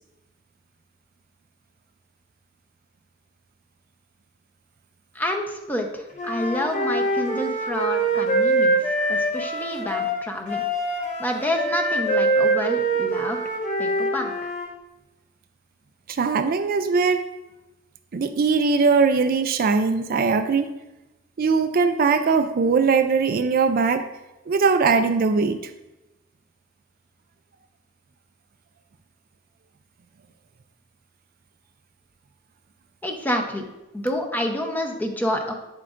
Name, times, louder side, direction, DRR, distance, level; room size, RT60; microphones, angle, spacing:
voice 1, 5.1-10.6 11.2-13.4 13.8-14.5 33.0-33.7 33.9-35.5, left 1 dB, 10° left, 2 dB, 0.8 m, -28 dB
Wind instrument woodwind instrument, 6.2-14.7, right 2 dB, 40° left, 1.2 m, -24 dB
voice 2, 16.1-17.3 18.1-20.7 21.4-24.1 24.5-25.7, right 4 dB, 50° right, 8 dB, 0.4 m, -20 dB
8.9 x 7.5 x 2.5 m, 1.0 s
head